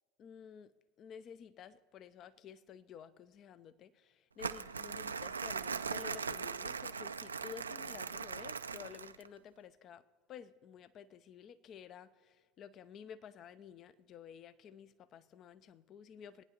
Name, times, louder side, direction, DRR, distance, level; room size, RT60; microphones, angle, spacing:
voice 1, 0.2-0.7 1.0-16.4, left 8 dB, 45° left, 0.5 m, -52 dB
Crumpling crinkling, 4.4-9.3, right 5 dB, 90° right, 0.3 m, -40 dB
23.0 x 9.4 x 2.9 m
hypercardioid pair, 75°, 0 cm